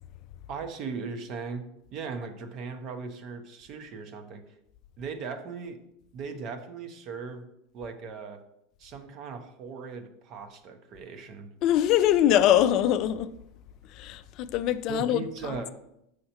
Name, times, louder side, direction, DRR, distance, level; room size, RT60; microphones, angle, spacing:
voice 1, 0.5-4.4 5.0-5.8 6.1-7.5 7.7-8.4 8.8-11.5 14.9-15.7, right 5 dB, 40° right, 0.7 m, -38 dB
voice 2, 11.6-13.3 13.9-15.7, left 11 dB, 45° left, 0.3 m, -23 dB
6.4 x 5.6 x 2.9 m
supercardioid pair, 145°, 0 cm